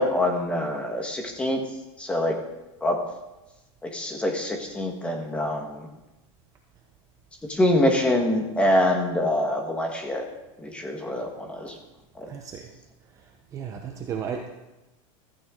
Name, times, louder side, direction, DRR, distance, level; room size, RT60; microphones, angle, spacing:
voice 1, 0.0-1.6 2.0-2.4 2.8-3.0 3.8-5.9 7.5-10.3 10.6-11.7 12.2-12.3, left 1 dB, 5° left, 3 dB, 1.4 m, -25 dB
voice 2, 12.3-12.7 13.5-14.5, right 7 dB, 20° right, 3 dB, 0.7 m, -34 dB
15.0 x 14.0 x 3.8 m, 1.0 s
supercardioid pair, 175°, 17 cm